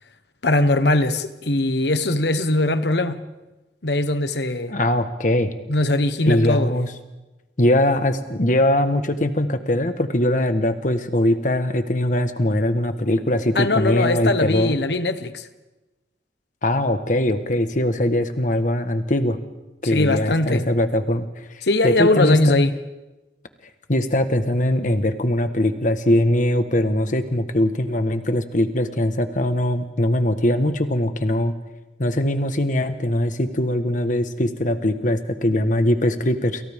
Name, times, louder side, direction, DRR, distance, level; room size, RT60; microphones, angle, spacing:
voice 1, 0.4-3.2 3.8-4.7 5.7-6.7 13.5-15.5 19.8-20.7 21.6-22.7, left 2 dB, 70° left, 1.3 m, -20 dB
voice 2, 4.7-5.5 6.3-6.9 7.6-14.7 16.6-19.4 19.8-21.3 21.8-22.6 23.9-31.5 32.0-36.6, left 1 dB, 45° left, 1.5 m, -21 dB
29.0 x 28.5 x 3.7 m
head